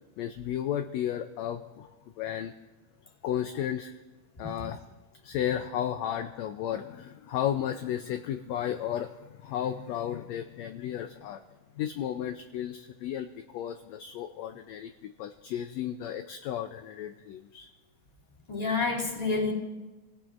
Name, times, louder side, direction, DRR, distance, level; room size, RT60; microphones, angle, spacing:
voice 1, 0.2-1.9 2.2-2.5 3.2-3.9 4.4-4.8 5.2-11.4 11.8-17.7, left 10 dB, 75° left, 7 dB, 1.6 m, -33 dB
voice 2, 18.5-19.5, left 4 dB, 10° left, -4 dB, 2.6 m, -28 dB
27.5 x 17.5 x 2.5 m, 1.2 s
omnidirectional pair, 3.6 m